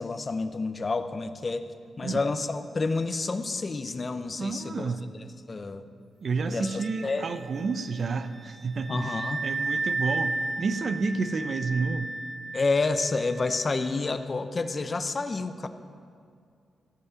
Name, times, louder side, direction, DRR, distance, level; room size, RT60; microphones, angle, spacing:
voice 1, 0.0-1.7 2.0-4.9 5.5-5.9 6.5-7.4 8.9-9.4 12.5-15.7, left 3 dB, 45° left, 10 dB, 0.6 m, -29 dB
voice 2, 4.4-5.1 6.2-12.1, right 4 dB, 60° right, 11 dB, 0.6 m, -30 dB
Wind instrument woodwind instrument, 6.6-14.0, right 3 dB, 30° right, 1.4 m, -34 dB
14.0 x 5.6 x 6.9 m, 2.3 s
supercardioid pair, 55°, 0 cm